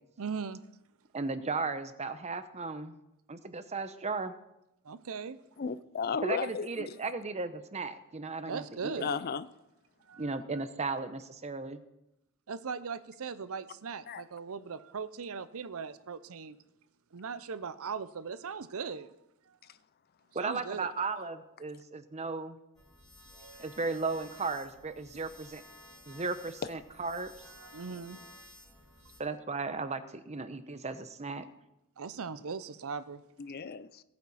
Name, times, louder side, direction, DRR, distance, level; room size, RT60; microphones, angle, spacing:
voice 1, 0.2-0.6 4.8-5.4 8.5-9.2 10.1-10.6 12.5-16.6 17.1-19.1 19.5-19.6 20.4-20.9 23.4-23.6 27.5-28.2 32.0-33.2, right 5 dB, 65° right, 0.6 m, -39 dB
voice 2, 1.1-3.0 3.3-4.3 6.2-8.9 10.2-11.8 20.3-22.6 23.6-25.6 26.1-27.3 29.2-31.5, right 3 dB, 30° right, 0.8 m, -35 dB
voice 3, 5.6-6.9 9.0-9.5 14.1-14.2 26.6-26.7 33.4-34.0, left 5 dB, 45° left, 0.5 m, -34 dB
sound 1, 22.7-29.2, left 1 dB, 15° left, 5.3 m, -54 dB
19.5 x 8.7 x 4.2 m
head